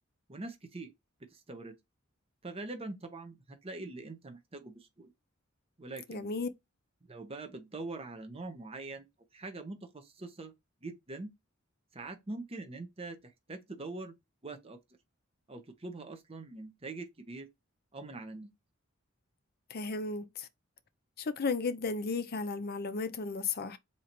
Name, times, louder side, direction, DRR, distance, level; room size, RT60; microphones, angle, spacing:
voice 1, 0.3-0.9 1.3-1.8 2.4-5.1 5.8-6.3 7.1-9.1 9.3-10.5 10.8-11.3 11.9-14.1 14.4-14.8 15.5-17.5 17.9-18.5, right 2 dB, 30° right, 0.8 m, -43 dB
voice 2, 6.1-6.5 19.7-20.5 21.2-23.8, left 4 dB, 50° left, 0.5 m, -34 dB
3.9 x 2.9 x 2.9 m
head